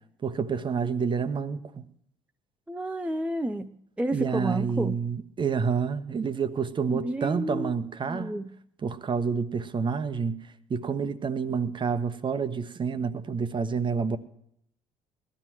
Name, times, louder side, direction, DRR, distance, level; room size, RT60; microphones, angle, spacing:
voice 1, 0.2-1.9 4.1-8.4 8.8-14.2, right 5 dB, 30° right, 1.0 m, -29 dB
voice 2, 2.7-5.0 6.9-7.7 8.0-8.5, right 1 dB, 10° right, 0.6 m, -31 dB
20.0 x 13.5 x 3.0 m
figure-of-eight pair, 50°, 16 cm